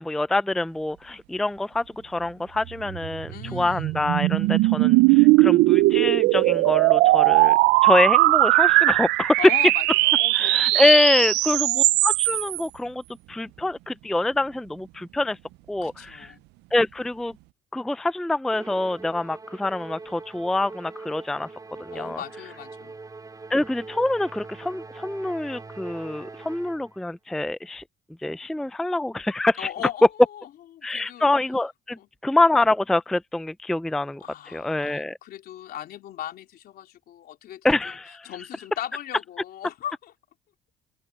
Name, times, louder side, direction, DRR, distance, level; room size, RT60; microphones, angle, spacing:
voice 1, 0.0-7.5 7.8-9.4 10.3-13.0 13.3-15.4 15.7-16.3 16.7-17.3 17.7-21.5 21.8-22.2 23.5-27.8 28.2-29.7 30.8-34.2 34.5-35.2 37.6-38.3, left 2 dB, ahead, 0.4 m, -25 dB
sound 1, 2.9-12.6, right 21 dB, 90° right, 0.4 m, -19 dB
voice 2, 3.3-4.0 9.4-11.3 11.5-12.0 15.8-16.4 21.9-23.0 29.6-31.3 32.0-32.1 34.2-40.1, left 11 dB, 65° left, 3.7 m, -39 dB
Musical instrument, 18.5-27.0, right 3 dB, 20° right, 5.1 m, -42 dB
open air
cardioid pair, 110°, 17 cm